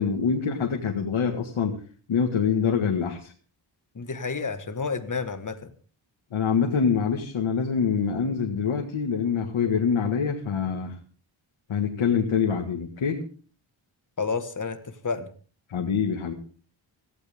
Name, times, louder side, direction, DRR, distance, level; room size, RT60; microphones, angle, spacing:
voice 1, 0.0-1.8 2.1-3.3 6.3-11.0 11.7-13.2 15.7-16.3, left 6 dB, 75° left, 2 dB, 1.9 m, -25 dB
voice 2, 4.0-5.7 14.2-15.3, left 4 dB, 40° left, 8 dB, 1.7 m, -30 dB
17.5 x 15.5 x 3.6 m, 0.41 s
wide cardioid pair, 130°, 48 cm